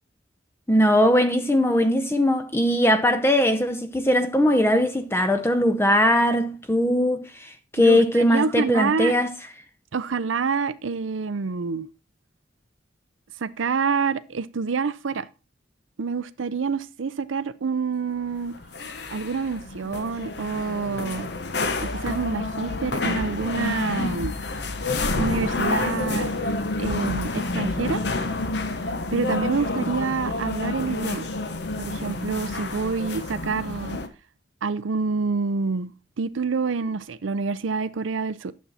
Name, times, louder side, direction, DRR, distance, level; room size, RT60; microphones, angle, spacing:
voice 1, 0.7-9.3, left 1 dB, 15° left, 0.6 m, -20 dB
voice 2, 7.8-9.1 9.9-11.9 13.4-15.3 16.0-18.6 19.1-21.3 21.8-24.3 25.2-26.3 26.8-28.0 29.1-31.3 31.8-34.0 34.6-35.9 36.2-38.5, right 5 dB, 90° right, 0.6 m, -27 dB
sound 1, 18.3-34.1, left 2 dB, 60° left, 1.0 m, -29 dB
9.5 x 7.2 x 4.1 m
head